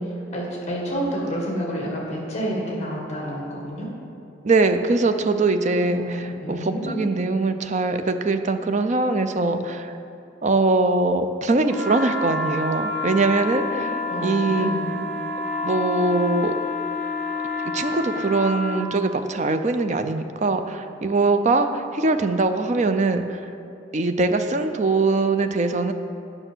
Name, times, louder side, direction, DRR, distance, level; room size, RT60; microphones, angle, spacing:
voice 1, 0.0-3.9 5.8-7.1 14.1-15.0, equal, 35° left, -2 dB, 1.8 m, -29 dB
voice 2, 4.4-9.9 10.4-13.9 14.2-14.7 15.6-16.5 17.7-23.4 23.9-25.9, right 3 dB, 40° right, 8 dB, 0.5 m, -22 dB
sound 1, 11.7-18.9, left 3 dB, 5° left, 1.0 m, -28 dB
8.9 x 5.9 x 6.2 m, 2.8 s
head